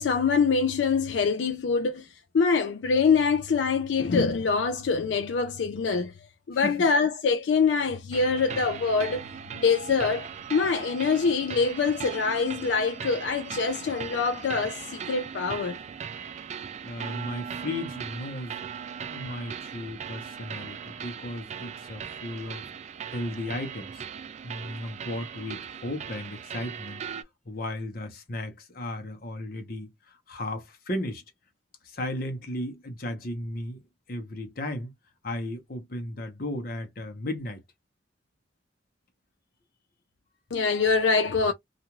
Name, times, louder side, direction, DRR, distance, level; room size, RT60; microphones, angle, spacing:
voice 1, 0.0-2.1 2.3-6.1 6.5-9.2 9.5-15.8 40.5-41.5, left 5 dB, 85° left, 0.4 m, -24 dB
voice 2, 6.5-6.9 16.8-22.7 23.1-24.0 24.4-27.0 27.5-31.2 31.8-33.8 34.1-34.9 35.2-37.6, left 1 dB, 55° left, 0.9 m, -35 dB
sound 1, 8.1-27.2, right 7 dB, 40° right, 0.3 m, -39 dB
2.5 x 2.4 x 2.9 m
head